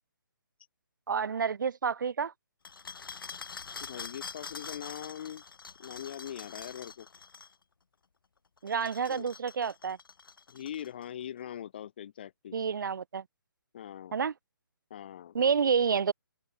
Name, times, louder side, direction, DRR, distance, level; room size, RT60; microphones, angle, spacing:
voice 1, 1.1-2.3 8.6-10.0 12.5-13.2 14.1-14.3 15.3-16.1, right 6 dB, 60° right, 0.7 m, -29 dB
sound 1, 2.6-7.5 8.6-11.0, left 5 dB, 75° left, 1.0 m, -45 dB
voice 2, 3.8-5.4 5.8-7.1 9.1-9.3 10.5-12.6 13.7-14.3 14.9-15.3, left 10 dB, 25° left, 0.6 m, -42 dB
open air
hypercardioid pair, 170°, 12 cm